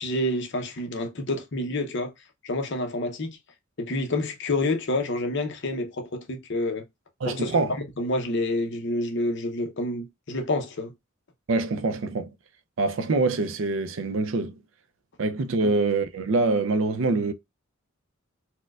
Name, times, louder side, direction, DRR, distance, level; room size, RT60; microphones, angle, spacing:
voice 1, 0.0-2.1 2.4-3.4 3.8-6.8 7.2-7.5 8.0-10.9 15.6-15.7, left 2 dB, 55° left, 0.7 m, -28 dB
voice 2, 7.2-7.8 11.5-12.3 12.8-14.6 15.2-17.3, right 3 dB, 65° right, 0.4 m, -25 dB
4.3 x 2.2 x 2.3 m
head